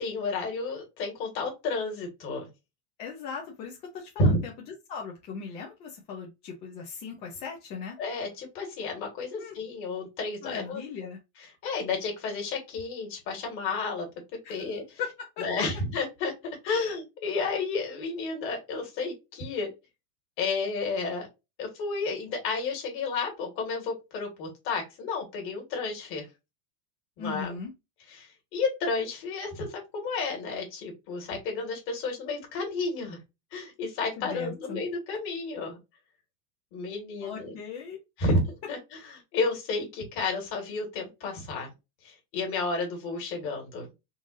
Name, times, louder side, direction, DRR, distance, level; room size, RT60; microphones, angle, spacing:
voice 1, 0.0-2.5 4.2-4.4 8.0-10.8 11.4-14.1 14.5-15.0 15.4-16.3 16.6-19.7 20.4-21.3 21.6-26.3 27.2-27.5 28.1-33.2 33.5-35.8 36.7-37.5 38.2-41.7 42.0-43.9, left 3 dB, 35° left, 1.6 m, -31 dB
voice 2, 3.0-4.5 4.9-8.0 9.4-9.6 10.4-11.2 14.4-14.6 15.0-15.1 15.4-15.5 16.7-17.0 27.2-27.7 34.2-34.8 37.2-38.0, left 6 dB, 20° left, 0.3 m, -38 dB
3.8 x 2.5 x 2.4 m
supercardioid pair, 160°, 35 cm